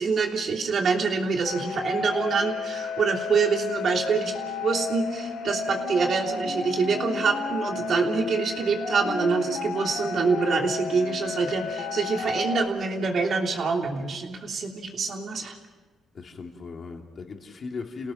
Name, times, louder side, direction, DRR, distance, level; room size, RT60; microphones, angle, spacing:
voice 1, 0.0-4.3 4.6-15.6, right 4 dB, 55° right, 2 dB, 3.2 m, -26 dB
sound 1, 1.4-12.6, left 4 dB, 85° left, 2.4 m, -32 dB
voice 2, 16.1-18.1, left 4 dB, 45° left, 2 dB, 3.0 m, -37 dB
28.5 x 18.0 x 6.0 m, 1.4 s
cardioid pair, 90°, 0 cm